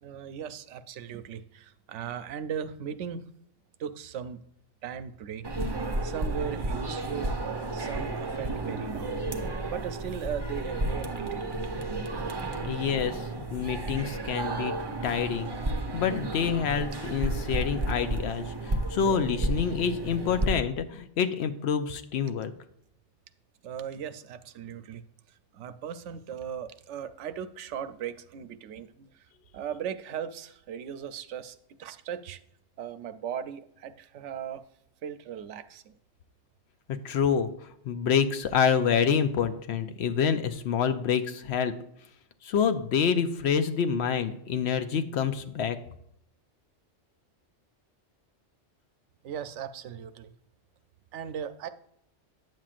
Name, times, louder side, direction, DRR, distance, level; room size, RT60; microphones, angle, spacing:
voice 1, 0.0-3.3 3.8-4.4 4.8-5.5 6.0-7.3 7.7-9.2 9.7-11.4 23.6-25.0 25.5-29.2 29.5-32.4 32.8-34.6 35.0-35.9 49.2-50.3 51.1-51.7, right 8 dB, 85° right, 11 dB, 0.9 m, -38 dB
sound 1, 5.4-20.5, right 2 dB, 25° right, 0.6 m, -32 dB
voice 2, 12.7-13.2 13.5-14.7 15.0-15.5 15.9-18.5 18.9-22.5 37.0-37.5 37.8-41.7 42.4-45.8, left 7 dB, 70° left, 10 dB, 0.9 m, -27 dB
9.2 x 7.3 x 2.4 m, 0.74 s
omnidirectional pair, 1.2 m